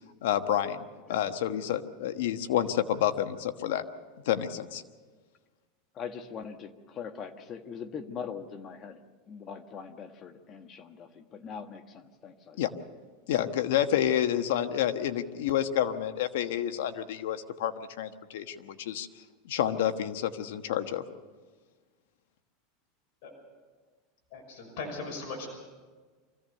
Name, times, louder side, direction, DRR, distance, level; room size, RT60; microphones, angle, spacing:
voice 1, 0.2-0.8 1.1-3.8 4.2-4.8 12.6-12.7 13.3-19.1 19.4-21.0, left 11 dB, 80° left, 9 dB, 1.3 m, -29 dB
voice 2, 5.9-9.0 9.3-12.6, left 6 dB, 35° left, 7 dB, 1.5 m, -42 dB
voice 3, 24.3-25.5, left 3 dB, 65° left, 1 dB, 6.0 m, -38 dB
24.5 x 16.0 x 6.7 m, 1.4 s
supercardioid pair, 135°, 0 cm